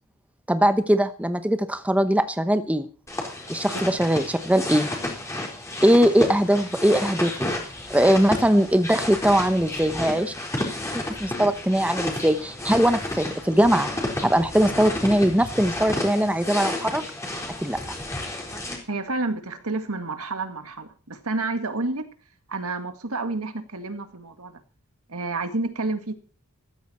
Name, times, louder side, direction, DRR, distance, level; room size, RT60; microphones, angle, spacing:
voice 1, 0.5-2.9 3.5-4.9 5.8-7.5 7.9-10.3 10.9-13.9 14.2-17.0 17.6-17.8, equal, 5° right, 9 dB, 0.9 m, -21 dB
sound 1, 3.1-18.8, left 1 dB, 15° left, 4.1 m, -31 dB
voice 2, 18.9-22.1 22.5-24.6 25.1-26.2, right 3 dB, 75° right, 8 dB, 1.9 m, -30 dB
14.5 x 13.5 x 4.3 m, 0.38 s
head